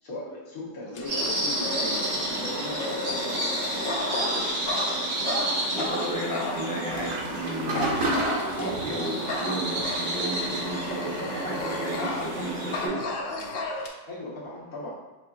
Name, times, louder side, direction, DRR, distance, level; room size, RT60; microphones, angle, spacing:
voice 1, 0.0-3.5 14.1-14.9, left 2 dB, 75° left, -6 dB, 1.7 m, -38 dB
Dog, 0.9-7.1 7.7-8.9 9.3-12.4 12.7-13.9, left 2 dB, 60° left, 0.6 m, -34 dB
sound 1, 1.0-12.9, right 1 dB, 65° right, 1.4 m, -31 dB
voice 2, 5.7-8.1 8.4-13.0, right 1 dB, 5° left, -9 dB, 1.1 m, -33 dB
sound 2, 6.9-12.5, right 2 dB, 90° right, 1.2 m, -34 dB
6.0 x 2.8 x 2.4 m, 1.2 s
omnidirectional pair, 1.5 m